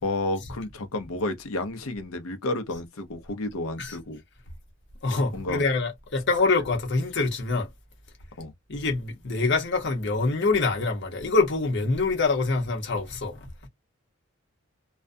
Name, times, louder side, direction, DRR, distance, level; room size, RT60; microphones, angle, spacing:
voice 1, 0.0-4.2 5.3-5.6 8.4-8.5, left 2 dB, 85° left, 0.7 m, -31 dB
voice 2, 5.0-7.7 8.7-13.4, left 3 dB, 55° left, 0.8 m, -25 dB
2.4 x 2.2 x 2.5 m
head